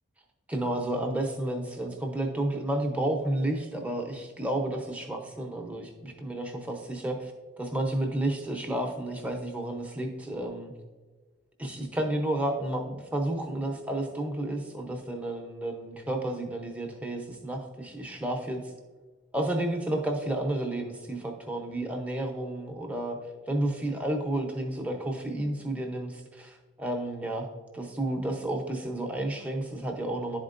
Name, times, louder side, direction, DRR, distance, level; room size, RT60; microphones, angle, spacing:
voice 1, 0.5-7.3 7.6-10.7 11.6-18.6 19.3-23.2 23.5-27.5 27.7-30.4, right 1 dB, 5° right, 2 dB, 0.7 m, -31 dB
11.0 x 4.3 x 2.5 m, 1.3 s
head